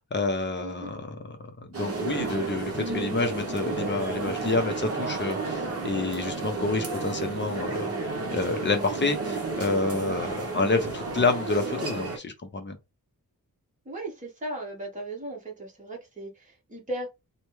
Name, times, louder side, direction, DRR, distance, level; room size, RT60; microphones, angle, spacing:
voice 1, 0.0-1.4 1.7-7.9 8.3-12.8, left 3 dB, 35° left, 0.7 m, -28 dB
voice 2, 0.6-0.9 13.8-17.1, right 1 dB, 20° right, 1.2 m, -37 dB
sound 1, 1.7-12.2, right 3 dB, 45° right, 0.9 m, -32 dB
3.3 x 2.2 x 3.1 m
wide cardioid pair, 170°, 34 cm